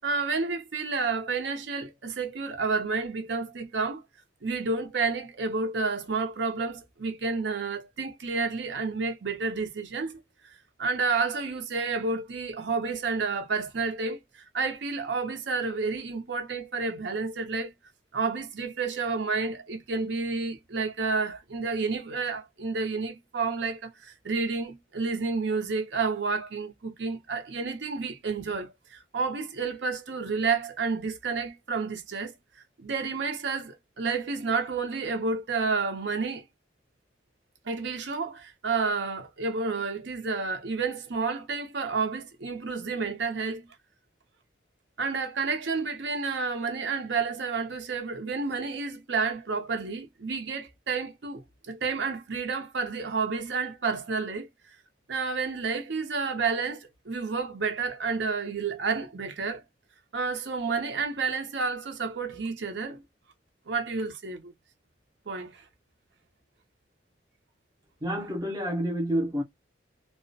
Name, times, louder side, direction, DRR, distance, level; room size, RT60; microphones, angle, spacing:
voice 1, 0.0-4.0 4.4-17.7 18.1-32.3 32.8-36.5 37.7-43.7 45.0-54.5 55.1-59.6 60.1-63.0 63.7-64.5 65.3-65.6, right 4 dB, 70° right, 0.6 m, -30 dB
voice 2, 68.0-69.4, equal, 20° right, 0.5 m, -28 dB
2.3 x 2.1 x 2.6 m
head